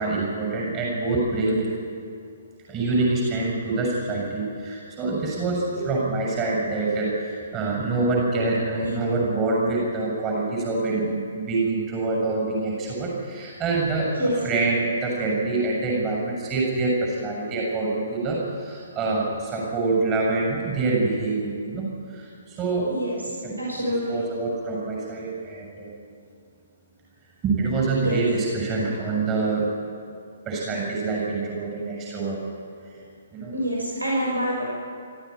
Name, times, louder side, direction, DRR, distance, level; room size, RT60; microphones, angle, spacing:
voice 1, 0.0-1.7 2.7-21.9 22.1-22.9 23.4-23.6 24.1-26.0 27.4-29.7 30.5-32.4 33.3-33.5, right 3 dB, 25° right, -2 dB, 7.0 m, -25 dB
voice 2, 23.6-24.2 28.0-28.2 33.5-34.7, equal, 80° right, -3 dB, 6.0 m, -26 dB
25.0 x 14.0 x 9.7 m, 2.3 s
figure-of-eight pair, 125°, 0 cm